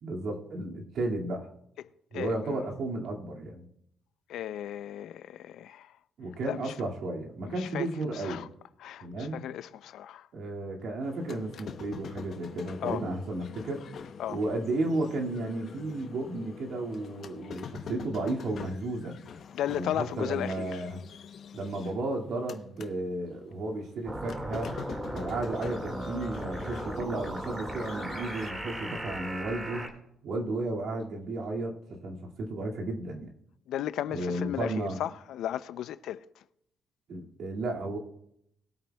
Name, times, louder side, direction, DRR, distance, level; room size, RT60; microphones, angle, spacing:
voice 1, 0.0-1.5 2.1-3.7 6.2-8.5 9.0-9.4 10.3-13.9 14.3-19.2 19.7-21.0 21.5-24.7 25.1-29.9 30.2-33.3 34.1-35.0 37.1-38.0, right 2 dB, 70° right, 2.2 m, -33 dB
voice 2, 1.8-2.6 4.3-6.0 6.4-6.7 7.5-8.5 8.8-10.3 12.8-13.0 14.2-14.4 19.5-20.8 33.7-36.4, left 11 dB, 80° left, 0.5 m, -35 dB
sound 1, 11.0-22.9 23.3-28.5, left 7 dB, 60° left, 0.8 m, -46 dB
sound 2, 24.0-29.9, right 1 dB, 30° right, 2.0 m, -37 dB
21.0 x 8.7 x 2.3 m
cardioid pair, 90°, 0 cm